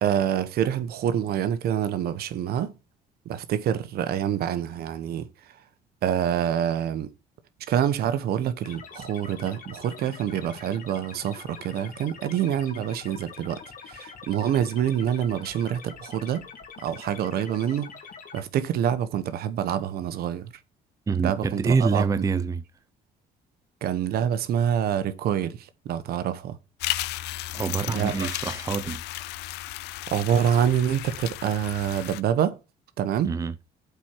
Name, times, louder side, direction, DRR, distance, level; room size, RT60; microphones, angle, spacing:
voice 1, 0.0-2.7 3.3-5.3 6.0-7.1 7.7-16.4 16.8-17.9 18.3-20.5 21.2-22.0 23.8-26.6 27.9-28.1 30.1-32.6 33.0-33.3, right 9 dB, 65° right, 1.0 m, -26 dB
sound 1, 8.6-18.4, left 6 dB, 50° left, 2.0 m, -44 dB
voice 2, 21.1-22.6 27.5-29.0 33.2-33.6, right 5 dB, 20° right, 0.5 m, -26 dB
sound 2, 26.8-32.2, left 16 dB, 85° left, 0.5 m, -34 dB
8.2 x 4.4 x 6.4 m
cardioid pair, 110°, 17 cm